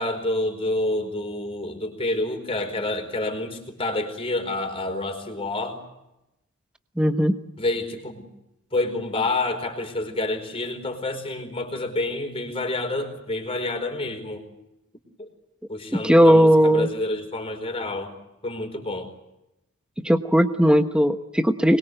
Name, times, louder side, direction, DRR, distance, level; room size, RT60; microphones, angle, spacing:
voice 1, 0.0-5.8 7.6-8.3 8.7-14.5 15.2-15.3 15.7-18.1 18.4-19.1, left 2 dB, 25° left, 5 dB, 4.6 m, -28 dB
voice 2, 7.0-7.3 16.0-16.9 20.0-21.8, equal, 5° right, 8 dB, 1.1 m, -17 dB
25.5 x 22.0 x 7.9 m, 0.91 s
head